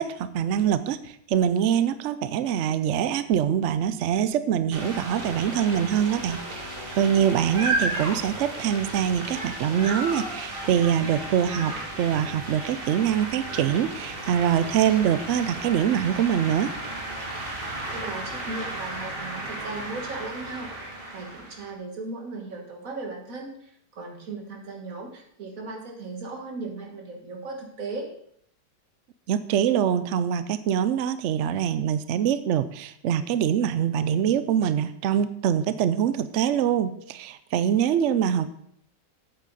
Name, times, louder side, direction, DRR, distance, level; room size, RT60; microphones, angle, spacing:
voice 1, 0.0-6.4 7.0-16.7 29.3-38.5, right 9 dB, 85° right, 13 dB, 0.6 m, -24 dB
sound 1, 4.7-21.7, right 2 dB, 35° right, 1.6 m, -34 dB
voice 2, 17.9-28.1, right 3 dB, 50° right, 2 dB, 1.9 m, -37 dB
8.4 x 8.3 x 3.9 m, 0.70 s
omnidirectional pair, 1.9 m